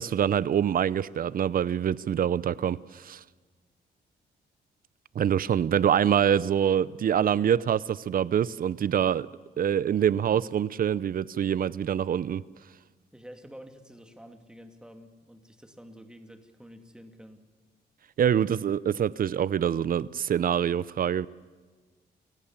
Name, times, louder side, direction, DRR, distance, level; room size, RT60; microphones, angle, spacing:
voice 1, 0.0-3.2 5.1-9.3 9.6-12.4 18.2-21.3, right 9 dB, 55° right, 20 dB, 0.7 m, -25 dB
voice 2, 13.1-17.4, equal, 5° right, 6 dB, 2.6 m, -49 dB
27.5 x 16.0 x 7.4 m, 1.4 s
cardioid pair, 90°, 17 cm